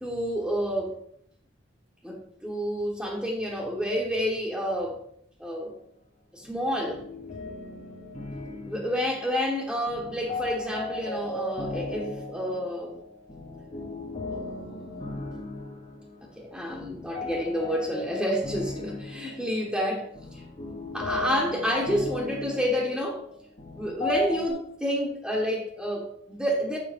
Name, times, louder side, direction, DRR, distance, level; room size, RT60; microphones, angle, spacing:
voice 1, 0.0-1.0 2.0-5.0 5.4-5.7 6.3-7.0 8.6-13.0 14.3-15.3 16.3-20.4 20.9-23.2 23.7-26.8, equal, 5° right, -4 dB, 1.2 m, -29 dB
sound 1, 6.4-24.5, left 2 dB, 35° left, 1.2 m, -37 dB
7.4 x 6.9 x 3.5 m, 0.70 s
head